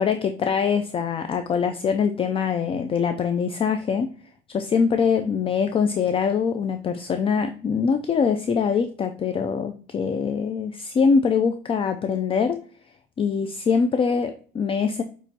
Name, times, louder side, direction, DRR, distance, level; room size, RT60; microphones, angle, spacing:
voice 1, 0.0-4.1 4.5-12.6 13.2-15.0, left 6 dB, 35° left, 8 dB, 0.3 m, -23 dB
6.4 x 3.0 x 2.8 m, 0.43 s
cardioid pair, 110°, 17 cm